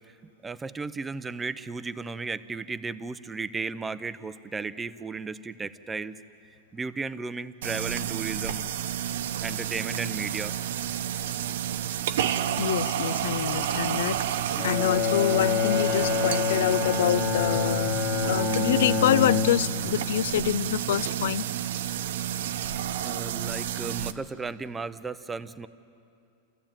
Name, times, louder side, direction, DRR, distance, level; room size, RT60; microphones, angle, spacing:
voice 1, 0.4-6.1 6.7-8.6 9.4-10.5 23.0-25.7, right 4 dB, 10° right, 13 dB, 0.5 m, -34 dB
sound 1, 7.6-24.1, right 10 dB, 80° right, 1.0 m, -30 dB
voice 2, 12.6-14.4 14.6-21.5, left 11 dB, 80° left, 20 dB, 0.4 m, -26 dB
Bowed string instrument, 14.6-20.0, left 6 dB, 50° left, 1.1 m, -27 dB
28.5 x 15.0 x 8.9 m, 2.6 s
supercardioid pair, 165°, 0 cm